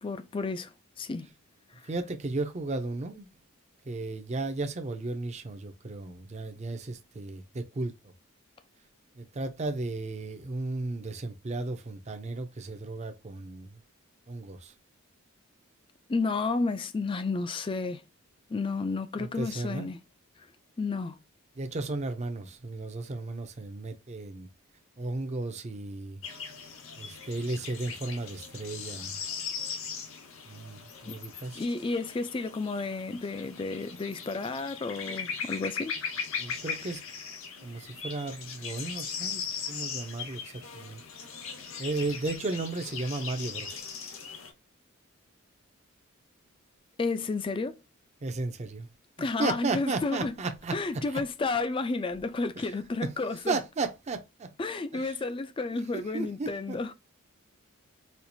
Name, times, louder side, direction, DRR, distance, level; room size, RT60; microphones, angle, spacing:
voice 1, 0.0-1.3 1.8-1.9 16.1-18.0 18.5-20.0 20.8-21.2 31.1-31.2 31.6-35.9 47.0-47.8 49.2-50.4 50.7-53.6 54.6-56.9, left 3 dB, 25° left, 0.3 m, -31 dB
voice 2, 1.9-3.3 3.8-7.9 9.2-13.8 14.3-14.7 19.2-19.9 21.6-24.5 25.0-26.2 27.0-29.2 30.5-31.6 36.4-37.0 37.6-41.0 41.8-43.8 48.2-48.9 49.2-50.7 52.6-52.7 53.0-53.1 53.5-54.5 54.9-55.2 55.9-56.8, right 3 dB, 30° right, 0.5 m, -34 dB
sound 1, 26.2-44.5, left 6 dB, 65° left, 0.9 m, -39 dB
4.3 x 2.4 x 2.6 m
head